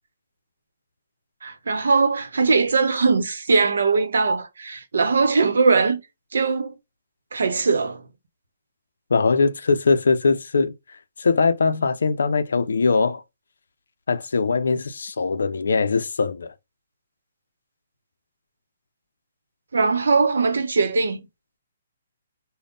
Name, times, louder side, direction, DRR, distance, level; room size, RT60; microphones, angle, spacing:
voice 1, 1.4-6.0 6.3-6.7 7.3-8.0 19.7-21.2, right 4 dB, 85° right, 0.8 m, -20 dB
voice 2, 9.1-10.7 11.2-13.2 14.1-16.5, left 4 dB, 85° left, 0.4 m, -21 dB
3.6 x 2.1 x 3.8 m
hypercardioid pair, 155°, 0 cm